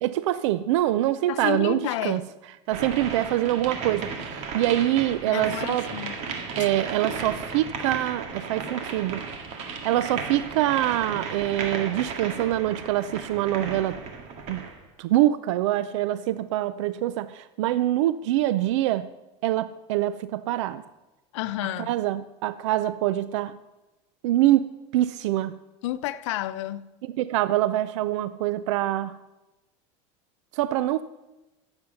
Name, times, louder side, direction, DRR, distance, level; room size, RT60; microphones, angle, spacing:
voice 1, 0.0-2.2 2.7-5.9 6.6-9.3 9.6-14.0 14.5-14.7 15.0-19.1 19.4-20.8 21.9-23.6 24.2-24.7 24.9-25.6 27.1-29.2 30.5-31.0, right 14 dB, 85° right, 0.5 m, -25 dB
voice 2, 1.3-2.2 5.3-6.2 21.3-21.9 25.8-26.9, left 14 dB, 85° left, 0.7 m, -30 dB
sound 1, 2.7-14.8, right 5 dB, 50° right, 1.9 m, -35 dB
15.0 x 8.0 x 5.6 m
supercardioid pair, 140°, 15 cm